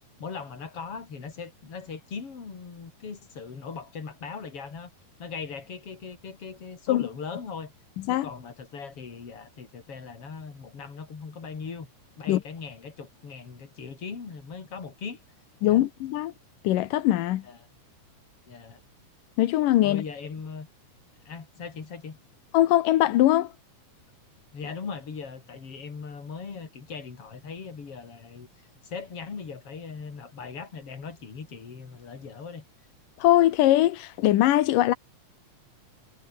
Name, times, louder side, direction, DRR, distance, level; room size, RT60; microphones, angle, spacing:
voice 1, 0.2-4.9 5.2-7.7 8.1-11.9 12.2-15.2 15.6-15.8 17.4-17.6 18.5-18.8 19.8-20.7 21.3-22.2 24.5-28.5 28.8-32.7, left 5 dB, 45° left, 4.6 m, -39 dB
voice 2, 15.6-16.3 16.6-17.4 19.4-20.0 22.5-23.5 33.2-34.9, left 14 dB, 90° left, 2.7 m, -21 dB
omnidirectional pair, 3.7 m